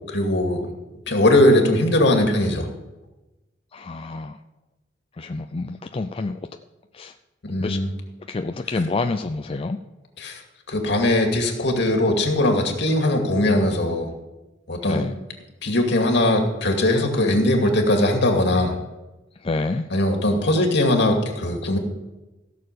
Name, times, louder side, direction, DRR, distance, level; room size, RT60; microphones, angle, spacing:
voice 1, 0.1-0.7 1.1-2.7 7.4-7.9 10.2-10.4 10.7-14.1 14.7-15.1 15.6-18.7 19.9-21.8, left 1 dB, 65° left, 2 dB, 2.4 m, -20 dB
voice 2, 3.7-4.4 5.2-6.4 6.9-7.1 7.6-7.8 8.3-9.8 14.8-15.2 19.4-19.9, left 3 dB, 30° left, 7 dB, 0.4 m, -28 dB
16.5 x 6.7 x 6.8 m, 1.1 s
head